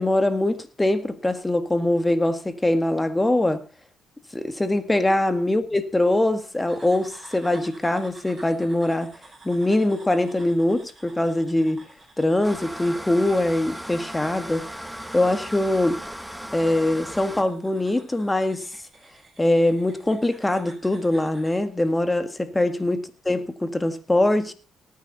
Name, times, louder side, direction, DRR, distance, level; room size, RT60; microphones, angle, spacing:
voice 1, 0.0-3.6 4.3-9.1 9.5-11.8 12.2-14.7 15.1-16.0 16.5-18.7 19.4-24.5, left 1 dB, 15° left, 1.8 m, -22 dB
sound 1, 6.7-21.6, right 3 dB, 25° right, 8.0 m, -50 dB
sound 2, 12.4-17.4, equal, 5° right, 1.1 m, -37 dB
18.5 x 9.4 x 4.1 m
cardioid pair, 90°, 0 cm